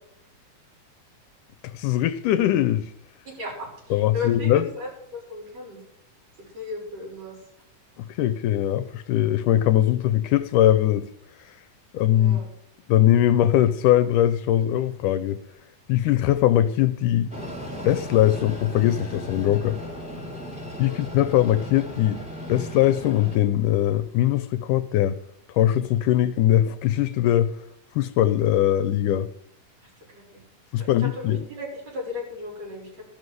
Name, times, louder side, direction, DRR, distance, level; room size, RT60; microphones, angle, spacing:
voice 1, 1.6-2.9 3.9-4.6 8.0-11.1 11.9-12.4 12.9-15.4 15.9-17.3 17.8-19.8 20.8-22.2 22.5-25.2 25.5-27.6 28.0-29.3 30.7-31.4, left 12 dB, 80° left, 2.1 m, -21 dB
voice 2, 3.3-5.8 6.5-7.4 12.1-12.5 20.9-21.0 29.8-30.4 30.8-33.0, left 3 dB, 50° right, 8.0 m, -36 dB
Train, 17.3-23.4, equal, ahead, 3.2 m, -36 dB
14.0 x 6.4 x 9.4 m
omnidirectional pair, 3.8 m